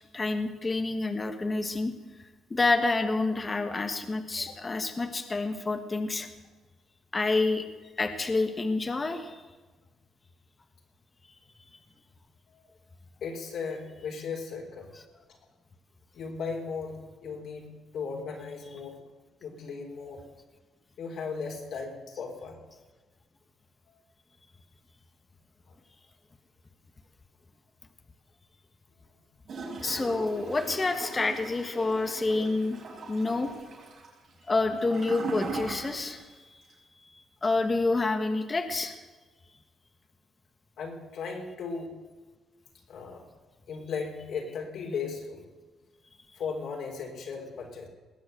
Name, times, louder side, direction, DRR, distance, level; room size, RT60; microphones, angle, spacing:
voice 1, 0.1-1.9 2.5-6.3 7.1-7.6 8.0-9.4 29.8-32.8 33.1-33.5 34.5-36.2 37.4-39.0, left 3 dB, 25° left, 7 dB, 1.3 m, -28 dB
voice 2, 13.2-14.9 15.3-15.4 16.1-19.0 19.4-20.2 21.0-22.6 23.9-24.0 30.2-30.3 40.8-41.9 42.9-43.2 43.7-45.4 46.4-47.9, left 5 dB, 70° left, 1 dB, 3.7 m, -37 dB
Gurgling / Toilet flush, 29.5-36.3 36.6-36.7, right 3 dB, 60° right, 5.0 m, -39 dB
20.0 x 7.9 x 7.9 m, 1.3 s
cardioid pair, 90°, 0 cm